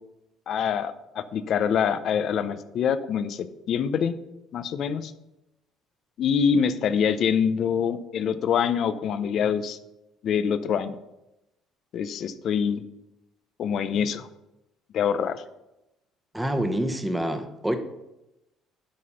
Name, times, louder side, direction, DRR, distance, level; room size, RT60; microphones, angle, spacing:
voice 1, 0.5-4.2 4.5-5.1 6.2-9.8 10.2-11.0 11.9-12.8 13.6-14.3 14.9-15.4, left 7 dB, 60° left, 13 dB, 0.6 m, -25 dB
voice 2, 16.3-17.8, right 1 dB, 5° right, 6 dB, 1.1 m, -27 dB
11.5 x 4.1 x 5.7 m, 0.93 s
supercardioid pair, 85°, 0 cm